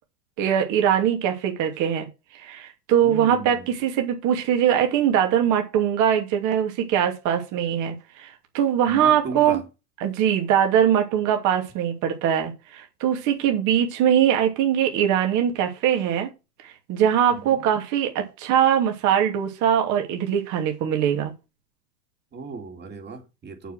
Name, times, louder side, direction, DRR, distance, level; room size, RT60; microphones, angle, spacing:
voice 1, 0.4-2.1 2.4-9.6 10.0-16.3 16.6-21.3, right 9 dB, 40° right, 2.7 m, -22 dB
voice 2, 3.0-3.7 8.9-9.6 17.3-17.6 22.3-23.7, right 5 dB, 20° right, 2.8 m, -36 dB
7.0 x 7.0 x 6.4 m
figure-of-eight pair, 95°, 48 cm